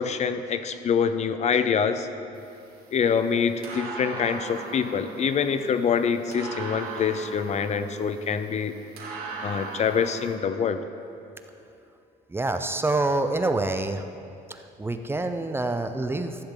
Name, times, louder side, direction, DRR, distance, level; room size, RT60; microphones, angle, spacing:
voice 1, 0.0-2.1 2.9-8.7 9.4-10.8, left 6 dB, 40° left, 10 dB, 0.6 m, -25 dB
sound 1, 2.3-10.3, right 4 dB, 60° right, 2.5 m, -39 dB
voice 2, 12.3-14.1 14.5-16.4, right 2 dB, 15° right, 7 dB, 0.5 m, -27 dB
14.0 x 10.0 x 3.8 m, 2.6 s
cardioid pair, 110°, 17 cm